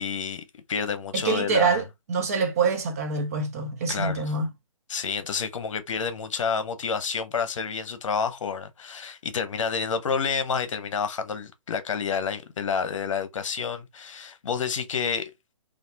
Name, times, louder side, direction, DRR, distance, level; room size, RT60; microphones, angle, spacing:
voice 1, 0.0-1.8 3.9-4.3 4.9-15.3, left 6 dB, 60° left, 0.9 m, -29 dB
voice 2, 1.1-4.5, right 5 dB, 25° right, 0.4 m, -25 dB
3.3 x 2.4 x 2.7 m
hypercardioid pair, 160°, 18 cm